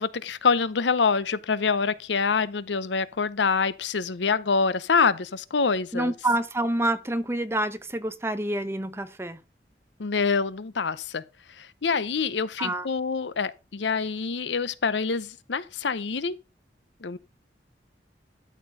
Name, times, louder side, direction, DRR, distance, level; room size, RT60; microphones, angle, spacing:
voice 1, 0.0-6.1 10.0-11.2 11.6-16.4 17.0-17.2, left 5 dB, 85° left, 0.7 m, -26 dB
voice 2, 5.9-9.4 12.6-12.9, right 1 dB, 15° right, 0.8 m, -27 dB
12.5 x 4.5 x 5.4 m
head